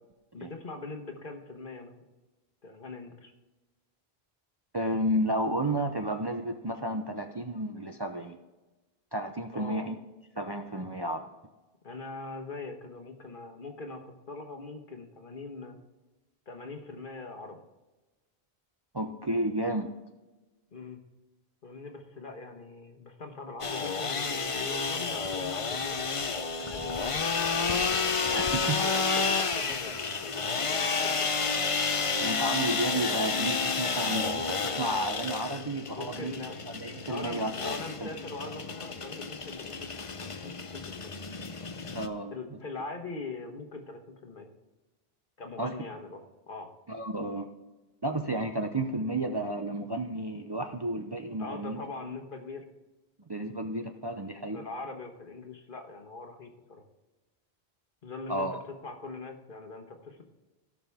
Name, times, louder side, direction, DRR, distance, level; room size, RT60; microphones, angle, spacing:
voice 1, 0.3-1.9 2.6-3.3 9.5-9.8 11.8-15.8 16.5-17.6 20.7-21.0 21.6-26.3 26.6-31.5 35.9-36.6 37.1-39.9 40.2-41.1 42.3-44.5 45.4-46.7 51.4-52.6 54.5-56.8 58.0-58.5 58.8-60.2, left 3 dB, 55° left, 4 dB, 1.5 m, -42 dB
voice 2, 4.7-8.4 9.1-10.0 10.4-11.2 18.9-19.9 28.3-28.8 32.2-36.3 36.7-37.5 38.0-38.1 41.9-42.3 45.6-45.7 46.9-47.5 48.0-51.8 53.3-54.6 58.3-58.6, right 1 dB, 30° right, 4 dB, 0.6 m, -32 dB
sound 1, 23.6-42.1, left 4 dB, 35° left, 0.7 m, -31 dB
16.5 x 5.9 x 3.5 m, 1.1 s
omnidirectional pair, 1.1 m